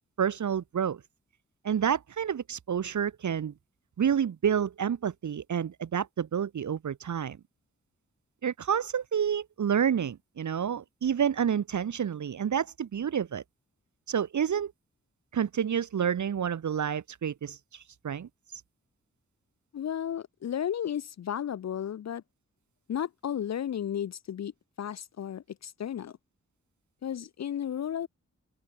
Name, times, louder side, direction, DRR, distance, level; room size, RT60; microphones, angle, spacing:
voice 1, 0.2-1.0 1.6-3.5 4.0-7.4 8.4-13.4 14.1-14.7 15.3-18.3, right 8 dB, 80° right, 1.1 m, -29 dB
voice 2, 19.7-22.2 22.9-24.5 24.8-26.2 27.0-28.1, left 9 dB, 65° left, 0.5 m, -33 dB
open air
cardioid pair, 60°, 29 cm